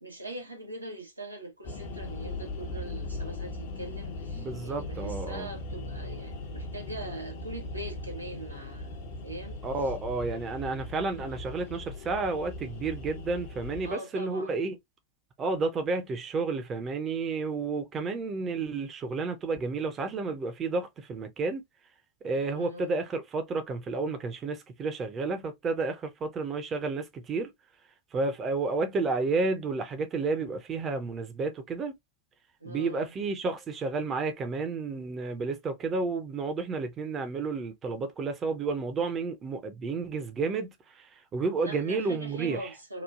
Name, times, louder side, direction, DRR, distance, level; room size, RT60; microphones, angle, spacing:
voice 1, 0.0-9.0 9.2-9.6 13.8-14.6 22.5-23.0 32.6-33.1 41.6-43.0, right 1 dB, 85° right, 1.0 m, -42 dB
sound 1, 1.6-14.0, left 2 dB, 45° left, 0.7 m, -39 dB
voice 2, 4.3-5.5 9.6-14.7 15.4-21.6 22.2-27.5 28.1-31.9 32.6-42.7, right 3 dB, 25° right, 0.6 m, -31 dB
3.0 x 2.2 x 2.4 m
figure-of-eight pair, 90°, 0 cm